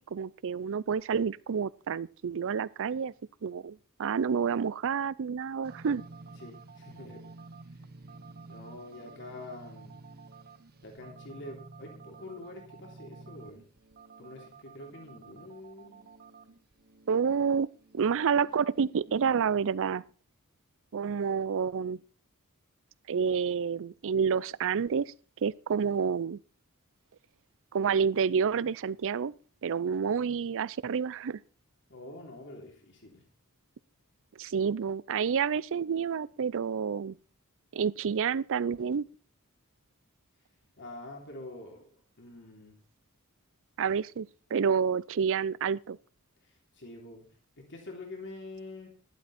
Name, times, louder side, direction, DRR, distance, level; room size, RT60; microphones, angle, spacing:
voice 1, 0.1-3.1 3.4-6.0 17.1-17.7 17.9-20.0 20.9-22.0 23.1-25.1 25.4-26.4 27.7-29.3 29.6-31.4 34.4-37.2 37.7-39.0 43.8-46.0, right 6 dB, 60° right, 0.5 m, -29 dB
sound 1, 5.6-19.4, right 3 dB, 45° right, 0.8 m, -51 dB
voice 2, 6.4-7.2 8.4-10.0 10.8-13.6 14.2-16.1 31.9-33.2 40.8-41.9 42.2-42.8 46.4-47.3 47.6-48.9, left 2 dB, 55° left, 3.2 m, -46 dB
11.5 x 11.5 x 4.2 m
head